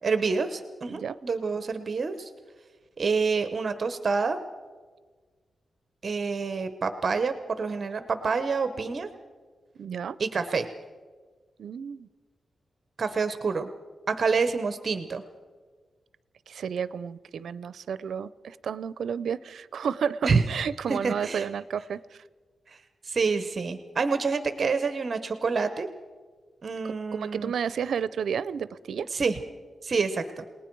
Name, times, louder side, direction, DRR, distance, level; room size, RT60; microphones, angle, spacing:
voice 1, 0.0-2.3 3.0-4.4 6.0-9.1 10.2-10.7 13.0-13.7 14.1-15.2 20.2-20.4 20.9-21.5 22.7-22.8 23.0-25.9 26.6-27.5 29.1-29.4 29.8-30.4, right 4 dB, 40° right, 10 dB, 0.9 m, -27 dB
voice 2, 9.8-10.2 11.6-12.1 16.5-22.2 26.8-29.1, right 7 dB, 75° right, 17 dB, 0.5 m, -32 dB
29.5 x 19.0 x 4.6 m, 1.5 s
wide cardioid pair, 165°, 0 cm